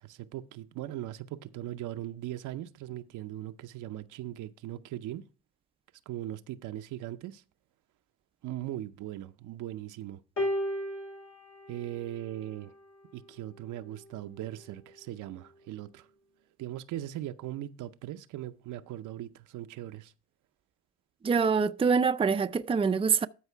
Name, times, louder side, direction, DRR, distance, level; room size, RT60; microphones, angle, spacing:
voice 1, 0.0-5.2 6.1-7.4 8.4-10.2 11.7-12.7 13.1-16.1 16.6-20.1, right 13 dB, 80° right, 0.7 m, -39 dB
sound 1, 10.4-12.8 13.9-14.0, equal, 60° left, 3.0 m, -35 dB
voice 2, 21.2-23.3, right 5 dB, 20° right, 0.4 m, -25 dB
13.0 x 4.7 x 4.6 m
supercardioid pair, 65°, 30 cm